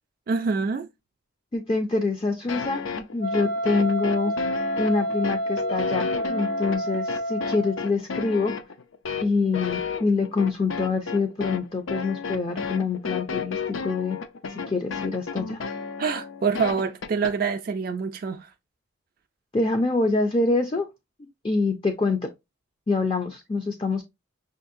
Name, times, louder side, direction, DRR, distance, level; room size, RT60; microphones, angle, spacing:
voice 1, 0.3-0.9 16.0-18.5, right 5 dB, 45° right, 0.3 m, -26 dB
voice 2, 1.5-4.3 4.8-8.5 9.2-14.2 14.5-15.6 19.5-20.9 21.2-22.3 22.9-24.0, left 3 dB, 25° left, 0.4 m, -25 dB
sound 1, 2.5-17.3, left 5 dB, 80° left, 0.5 m, -32 dB
Wind instrument woodwind instrument, 3.2-7.9, equal, 50° left, 0.8 m, -29 dB
6.0 x 2.6 x 2.5 m
head